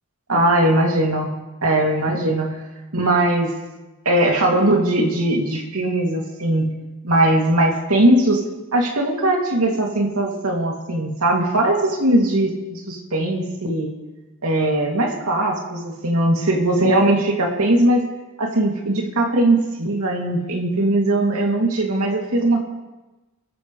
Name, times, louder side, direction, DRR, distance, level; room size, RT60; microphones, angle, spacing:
voice 1, 0.3-1.3 1.6-2.6 2.9-3.5 4.0-6.7 7.0-8.4 8.7-13.9 14.4-18.0 18.4-22.6, right 1 dB, 90° right, 0 dB, 2.8 m, -19 dB
25.5 x 14.0 x 3.3 m, 1.1 s
head